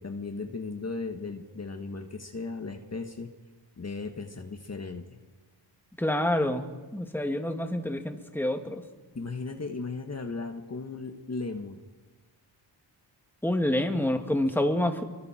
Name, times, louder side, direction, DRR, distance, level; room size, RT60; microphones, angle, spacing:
voice 1, 0.0-3.3 3.8-5.2 9.2-11.8, left 3 dB, 35° left, 5 dB, 1.8 m, -36 dB
voice 2, 6.0-8.8 13.4-15.0, left 1 dB, 5° left, 4 dB, 2.4 m, -27 dB
28.5 x 23.5 x 4.5 m, 1.4 s
cardioid pair, 70°, 45 cm